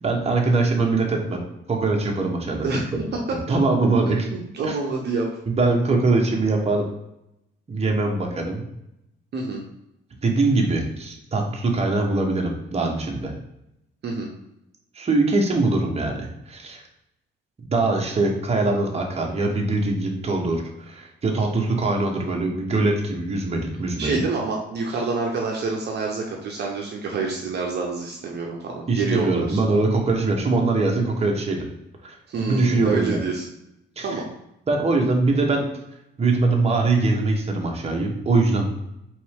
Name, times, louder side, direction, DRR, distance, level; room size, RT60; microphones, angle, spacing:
voice 1, 0.0-1.4 1.7-2.8 3.5-4.3 4.6-4.8 5.5-6.9 7.7-8.6 10.2-13.3 14.9-16.8 17.7-24.2 28.9-31.7 32.0-33.2 34.0-34.1 34.7-35.7 36.2-38.7, right 3 dB, 30° right, 1 dB, 1.1 m, -22 dB
voice 2, 4.1-5.3 9.3-9.6 14.0-14.3 24.0-29.6 32.3-33.5 34.0-34.3, right 4 dB, 55° right, 0 dB, 0.8 m, -27 dB
4.3 x 3.2 x 3.4 m, 0.83 s
cardioid pair, 90°, 20 cm